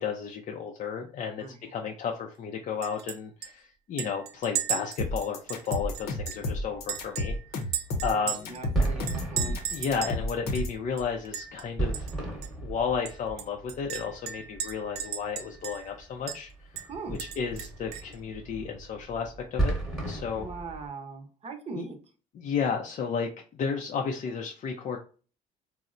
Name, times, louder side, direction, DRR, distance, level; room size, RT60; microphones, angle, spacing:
voice 1, 0.0-1.4 1.7-8.5 9.4-12.1 12.6-19.7 20.1-20.5 21.7-21.9 22.3-25.0, left 6 dB, 45° left, 2 dB, 0.4 m, -33 dB
Chink clink, 2.8-3.2 3.4-3.5 4.0-6.5 6.9-8.6 9.1-10.2 10.5-10.6 11.0-11.6 11.9-12.1 12.4-12.5 13.1-15.9 16.3-16.4 16.8-18.1, right 10 dB, 70° right, 0.5 m, -36 dB
sound 1, 5.0-10.8, left 2 dB, 70° left, 0.8 m, -32 dB
sound 2, 5.8-20.9, right 2 dB, ahead, 1.0 m, -36 dB
voice 2, 8.1-9.6 16.9-17.2 20.4-22.0, right 4 dB, 35° right, 4 dB, 0.7 m, -40 dB
4.1 x 2.0 x 2.4 m, 0.38 s
cardioid pair, 110°, 17 cm